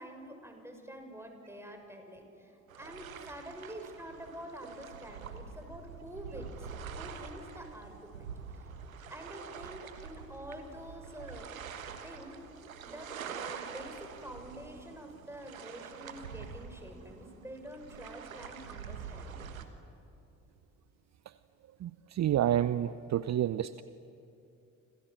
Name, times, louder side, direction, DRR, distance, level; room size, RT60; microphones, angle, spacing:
voice 1, 0.0-8.7 9.1-11.5 11.9-12.4 12.8-19.5, equal, 5° right, 4 dB, 6.6 m, -47 dB
sound 1, 2.7-19.7, right 6 dB, 85° right, 1.4 m, -46 dB
voice 2, 21.8-23.8, right 11 dB, 45° right, 16 dB, 0.8 m, -29 dB
30.0 x 26.5 x 7.5 m, 2.8 s
figure-of-eight pair, 40°, 40 cm